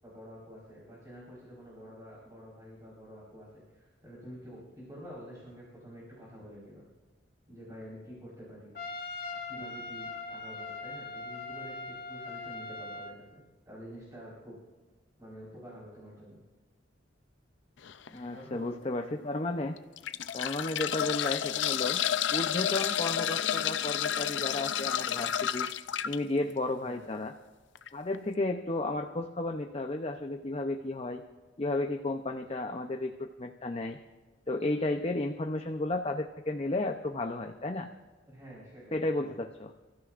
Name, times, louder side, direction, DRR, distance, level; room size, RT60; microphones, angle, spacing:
voice 1, 0.0-6.9 7.5-8.7 9.5-14.6 15.2-16.4 18.1-18.7 26.8-27.1 38.3-39.3, equal, 20° right, -7 dB, 4.5 m, -48 dB
Trumpet, 8.8-13.2, left 3 dB, 55° left, 1.6 m, -40 dB
sound 1, 17.8-18.1 18.7-18.8 19.8-26.2 27.8-27.9 28.1-28.2, left 10 dB, 75° left, 0.5 m, -30 dB
voice 2, 18.1-19.8 20.3-22.0 22.3-25.7 26.0-27.3 27.9-31.2 31.6-34.0 34.5-37.9 38.9-39.7, left 2 dB, 30° left, 4 dB, 0.7 m, -33 dB
29.5 x 14.5 x 2.5 m, 1.3 s
head